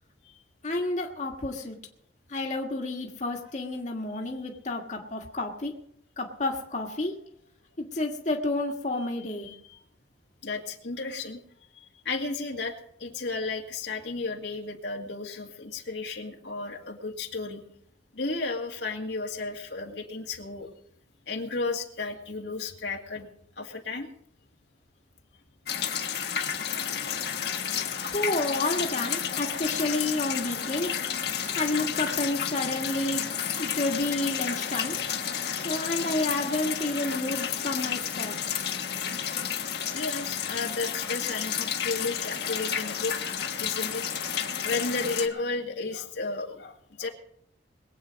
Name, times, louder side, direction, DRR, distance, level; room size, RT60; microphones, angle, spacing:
voice 1, 0.6-1.8 2.3-5.7 6.2-7.1 7.8-9.5 28.0-30.9 31.5-35.0 35.6-38.4, left 2 dB, 40° left, 1 dB, 1.7 m, -30 dB
voice 2, 9.4-9.8 10.4-11.4 11.8-12.7 13.0-17.6 18.1-20.7 21.3-23.3 23.6-24.1 26.6-27.9 28.8-28.9 29.3-29.7 30.9-31.0 33.3-33.6 38.8-39.0 39.9-44.4 44.6-47.1, left 3 dB, 80° left, 2 dB, 2.1 m, -34 dB
sound 1, 25.7-45.3, left 8 dB, 60° left, 1.4 m, -31 dB
22.0 x 8.7 x 5.2 m, 0.70 s
head